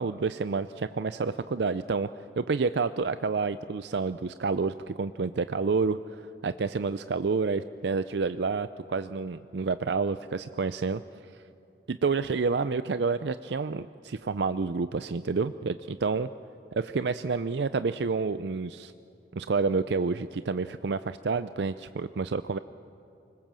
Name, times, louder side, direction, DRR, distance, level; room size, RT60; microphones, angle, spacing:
voice 1, 0.0-2.1 2.4-11.0 11.3-11.4 11.9-16.3 16.7-18.9 19.3-22.6, right 4 dB, 70° right, 12 dB, 0.5 m, -29 dB
25.0 x 21.0 x 7.5 m, 2.8 s
head